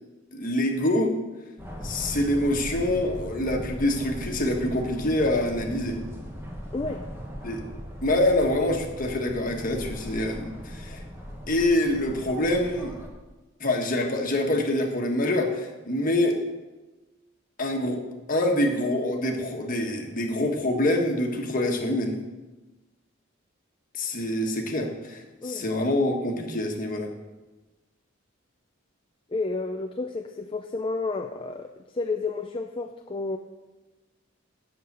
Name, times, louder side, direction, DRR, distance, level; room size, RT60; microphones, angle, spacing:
voice 1, 0.3-1.1 1.8-6.0 7.4-7.6 8.0-11.0 11.5-13.0 13.6-16.4 17.6-18.0 18.3-22.2 23.9-27.1, left 1 dB, 45° left, 2 dB, 1.4 m, -25 dB
sound 1, 1.6-13.1, equal, 10° right, 1.5 m, -38 dB
voice 2, 6.7-7.1 25.4-25.7 29.3-33.4, left 3 dB, 25° left, 5 dB, 0.4 m, -31 dB
7.8 x 6.6 x 8.1 m, 1.1 s
head